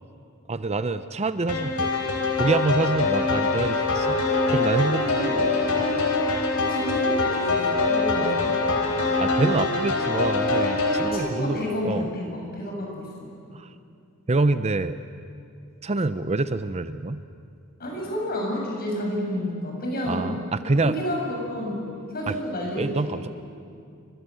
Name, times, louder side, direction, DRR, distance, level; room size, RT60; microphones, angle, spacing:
voice 1, 0.5-1.9 2.4-4.2 4.5-5.1 5.8-5.9 9.2-12.1 13.5-13.7 14.3-15.0 15.8-17.2 20.1-20.9 22.3-22.4 22.7-23.3, right 3 dB, 30° right, 12 dB, 0.7 m, -26 dB
sound 1, 1.5-11.1, left 3 dB, 75° left, 3.8 m, -24 dB
voice 2, 5.0-5.6 6.7-8.6 11.1-13.3 17.8-20.3 20.8-21.8 22.1-23.3, equal, 45° left, -1 dB, 7.9 m, -30 dB
29.5 x 24.5 x 7.9 m, 2.4 s
head